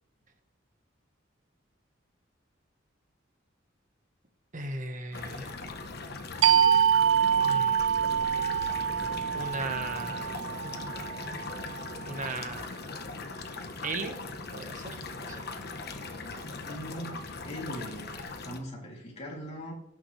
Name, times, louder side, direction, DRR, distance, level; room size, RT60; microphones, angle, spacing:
voice 1, 4.5-5.5 7.4-7.8 9.3-10.4 12.1-13.1 13.8-14.2 14.5-15.4, right 2 dB, 45° right, 5 dB, 1.5 m, -37 dB
sound 1, 5.1-18.6, left 3 dB, 55° left, 1.2 m, -39 dB
sound 2, 6.4-11.7, right 8 dB, 80° right, 0.7 m, -26 dB
voice 2, 16.6-19.7, equal, 35° left, -3 dB, 3.3 m, -41 dB
17.5 x 6.3 x 3.4 m, 0.78 s
head